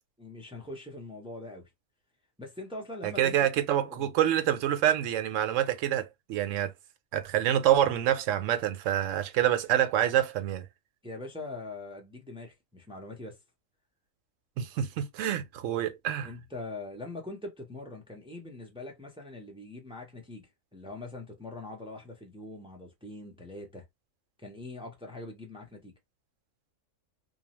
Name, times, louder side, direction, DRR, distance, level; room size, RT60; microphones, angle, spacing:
voice 1, 0.2-1.7 2.4-4.1 11.0-13.4 16.2-23.8 24.4-25.9, left 2 dB, 10° right, 0.4 m, -43 dB
voice 2, 3.0-6.7 7.1-10.6 14.6-16.3, right 11 dB, 75° right, 0.9 m, -27 dB
2.7 x 2.2 x 2.9 m
omnidirectional pair, 1.4 m